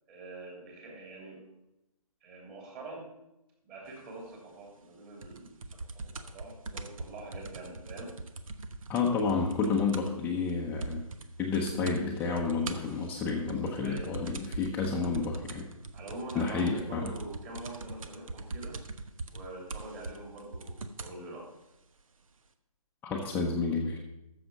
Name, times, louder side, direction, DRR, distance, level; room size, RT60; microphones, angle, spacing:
voice 1, 0.1-1.4 2.2-3.1 3.6-8.2 13.8-14.4 15.9-18.8 19.3-21.5, right 2 dB, 25° right, -1 dB, 3.1 m, -45 dB
sound 1, 5.2-10.2 10.5-10.6 10.8-11.3 11.5-12.0 12.4-21.2 22.0-22.1, right 3 dB, 60° right, 1.0 m, -42 dB
voice 2, 8.9-11.0 11.4-15.7 16.3-17.1 23.0-24.0, left 4 dB, 10° left, -3 dB, 0.8 m, -30 dB
13.5 x 6.9 x 5.3 m, 0.89 s
figure-of-eight pair, 145°, 19 cm